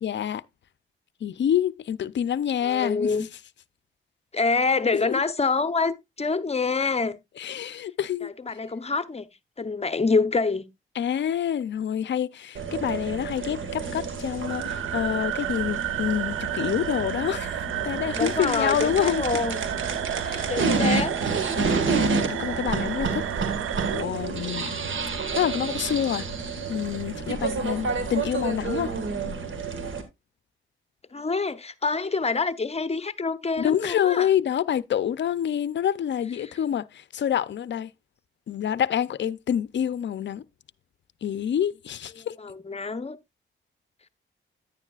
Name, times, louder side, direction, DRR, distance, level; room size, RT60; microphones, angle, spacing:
voice 1, 0.0-0.4 1.2-3.1 5.0-5.2 7.4-8.3 11.0-19.3 20.2-20.7 21.5-23.3 23.9-24.8 25.3-26.3 26.7-28.9 33.6-37.9 38.5-40.4 41.2-42.4, left 9 dB, 60° left, 0.5 m, -27 dB
voice 2, 2.6-3.2 4.3-7.2 8.2-9.3 9.6-10.7 18.2-19.6 20.5-21.2 31.1-34.3 36.4-36.5 42.2-43.2, left 4 dB, 30° left, 0.8 m, -26 dB
sound 1, 12.5-30.0, right 4 dB, 70° right, 1.7 m, -29 dB
sound 2, 14.5-24.0, right 12 dB, 85° right, 0.5 m, -32 dB
9.8 x 9.8 x 2.4 m
cardioid pair, 70°, 21 cm